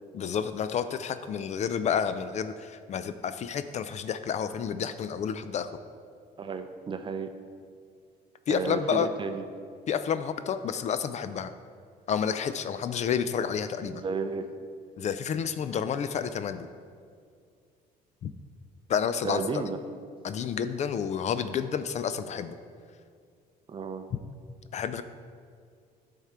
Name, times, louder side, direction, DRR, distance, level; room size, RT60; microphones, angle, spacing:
voice 1, 0.1-5.7 8.5-9.1 9.9-11.5 12.1-14.0 15.0-16.7 18.2-18.3 18.9-19.6 20.2-22.6 24.1-24.2 24.7-25.0, left 7 dB, 45° left, 11 dB, 0.4 m, -30 dB
voice 2, 6.4-7.3 8.5-9.4 13.9-14.5 19.2-19.8 23.7-24.0, right 4 dB, 30° right, 8 dB, 0.5 m, -32 dB
10.5 x 3.7 x 4.3 m, 2.2 s
cardioid pair, 110°, 17 cm